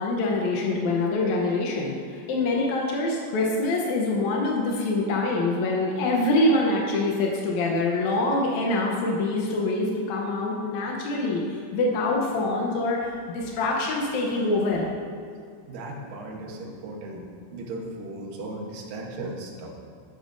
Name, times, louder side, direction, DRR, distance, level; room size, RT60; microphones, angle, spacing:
voice 1, 0.0-14.9, left 2 dB, 80° left, -1 dB, 1.6 m, -25 dB
voice 2, 15.7-17.2 17.5-19.7, right 2 dB, 65° right, -1 dB, 2.6 m, -36 dB
11.5 x 11.0 x 2.6 m, 2.3 s
omnidirectional pair, 4.6 m